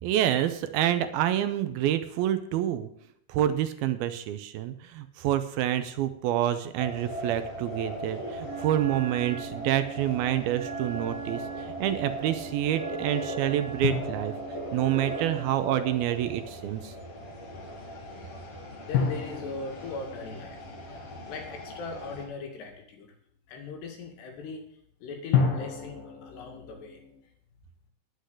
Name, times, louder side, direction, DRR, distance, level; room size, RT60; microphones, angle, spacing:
voice 1, 0.0-2.9 3.3-14.3 14.7-16.9, right 12 dB, 80° right, 10 dB, 2.5 m, -28 dB
sound 1, 6.8-22.3, equal, 40° left, 2.7 m, -39 dB
Wind instrument woodwind instrument, 8.4-15.7, right 8 dB, 65° right, 3.1 m, -41 dB
sound 2, 13.8-16.1 18.9-21.9 25.3-27.2, left 6 dB, 65° left, 3.3 m, -32 dB
voice 2, 18.8-21.0 21.3-23.1 23.5-24.7 25.0-27.0, left 4 dB, 85° left, 4 dB, 4.2 m, -39 dB
10.5 x 8.3 x 7.9 m, 0.69 s
omnidirectional pair, 4.7 m